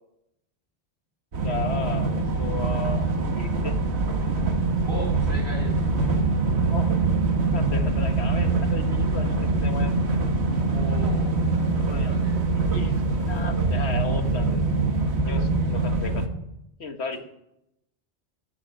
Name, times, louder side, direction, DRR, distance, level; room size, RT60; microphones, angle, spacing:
sound 1, 1.3-16.3, right 3 dB, 70° right, 1.7 m, -24 dB
voice 1, 1.4-3.8 6.7-7.0 7.5-9.9 11.8-12.2 12.5-14.6 15.2-16.3 16.8-17.2, left 3 dB, 75° left, 6 dB, 1.9 m, -35 dB
voice 2, 4.8-5.8 10.6-11.5 11.9-12.4, right 1 dB, 55° right, -3 dB, 5.6 m, -37 dB
14.0 x 10.5 x 9.0 m, 0.83 s
omnidirectional pair, 1.1 m